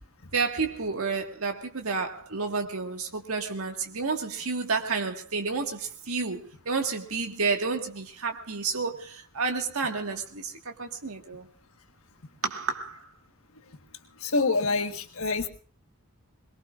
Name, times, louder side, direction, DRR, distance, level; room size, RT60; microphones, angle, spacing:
voice 1, 0.3-11.5 12.4-13.0, right 4 dB, 75° right, 1.8 m, -30 dB
voice 2, 14.2-15.5, left 3 dB, 70° left, 1.4 m, -26 dB
22.5 x 22.0 x 2.5 m
head